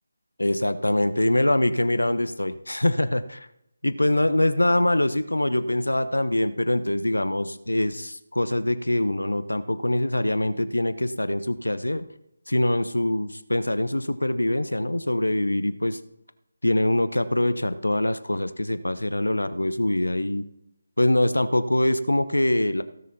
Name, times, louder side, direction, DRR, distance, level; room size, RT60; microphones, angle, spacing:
voice 1, 0.4-3.5 3.8-12.1 12.5-16.0 16.6-20.5 21.0-22.8, left 1 dB, 85° left, 12 dB, 1.0 m, -24 dB
17.0 x 6.5 x 4.2 m, 0.83 s
figure-of-eight pair, 155°, 0 cm